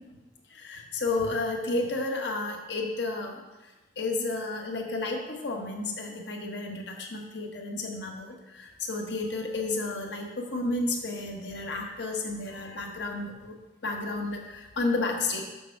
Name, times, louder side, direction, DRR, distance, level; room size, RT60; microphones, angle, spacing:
voice 1, 0.5-3.4 4.0-13.5 13.8-15.4, left 2 dB, 75° left, 1 dB, 1.2 m, -32 dB
6.9 x 6.4 x 4.7 m, 1.1 s
head